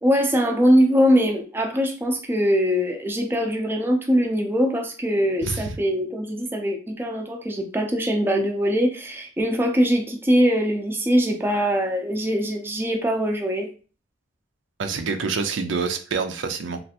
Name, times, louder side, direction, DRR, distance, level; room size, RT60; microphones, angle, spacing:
voice 1, 0.0-13.7, equal, 10° right, 2 dB, 0.4 m, -22 dB
voice 2, 5.4-5.8 14.8-16.8, right 4 dB, 90° right, 7 dB, 0.5 m, -27 dB
3.2 x 2.5 x 2.8 m, 0.37 s
head